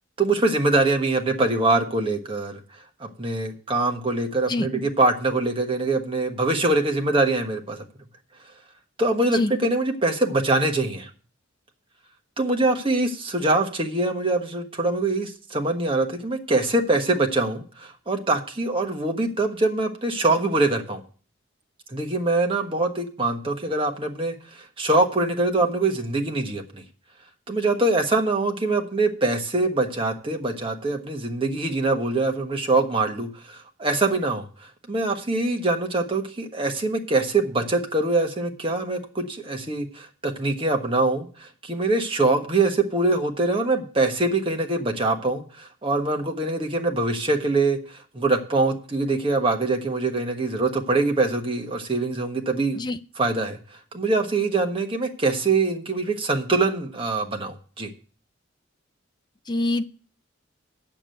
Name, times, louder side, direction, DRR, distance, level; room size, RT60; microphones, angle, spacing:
voice 1, 0.2-2.6 3.0-7.8 9.0-11.1 12.4-21.0 21.9-26.8 27.5-52.8 53.2-53.6 53.9-57.9, right 2 dB, 25° right, 3 dB, 1.3 m, -24 dB
voice 2, 59.5-59.8, left 2 dB, 20° left, 9 dB, 0.5 m, -25 dB
8.4 x 7.0 x 7.7 m, 0.41 s
head